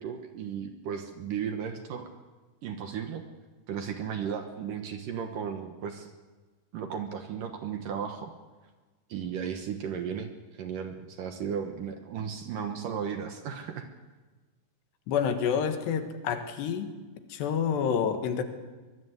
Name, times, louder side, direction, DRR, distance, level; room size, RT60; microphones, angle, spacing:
voice 1, 0.0-2.1 2.6-3.2 3.7-6.1 6.7-8.3 9.1-13.9, right 7 dB, 65° right, 6 dB, 2.4 m, -35 dB
voice 2, 15.1-16.9 17.3-18.4, left 7 dB, 75° left, 7 dB, 3.6 m, -28 dB
23.5 x 21.0 x 8.2 m, 1.3 s
omnidirectional pair, 5.0 m